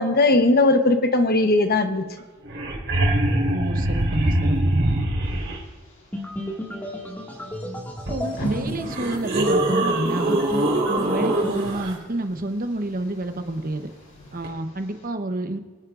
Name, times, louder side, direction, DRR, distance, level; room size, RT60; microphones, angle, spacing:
voice 1, 0.0-2.1, left 2 dB, 50° left, 7 dB, 1.0 m, -18 dB
sound 1, 2.2-2.3 2.4-5.6 8.1-8.2 8.8-11.9 14.4-14.5, right 1 dB, 60° right, 4.0 m, -23 dB
voice 2, 3.5-4.9 8.1-10.4 10.9-13.9 14.3-15.6, right 2 dB, 45° right, 7 dB, 0.9 m, -29 dB
sound 2, 5.2-15.1, equal, 85° left, 4.5 m, -43 dB
sound 3, 6.1-11.7, equal, 10° left, 2.0 m, -32 dB
24.5 x 9.5 x 2.5 m, 1.5 s
head